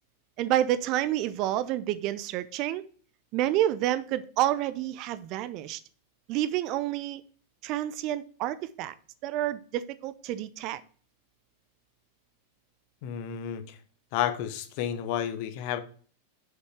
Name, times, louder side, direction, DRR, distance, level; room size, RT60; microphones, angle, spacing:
voice 1, 0.4-2.8 3.3-5.8 6.3-7.2 7.6-8.9 9.2-10.8, right 13 dB, 40° right, 0.5 m, -29 dB
voice 2, 13.0-13.8 14.1-15.8, left 10 dB, 45° left, 0.9 m, -31 dB
6.4 x 5.3 x 4.8 m
figure-of-eight pair, 90°, 0 cm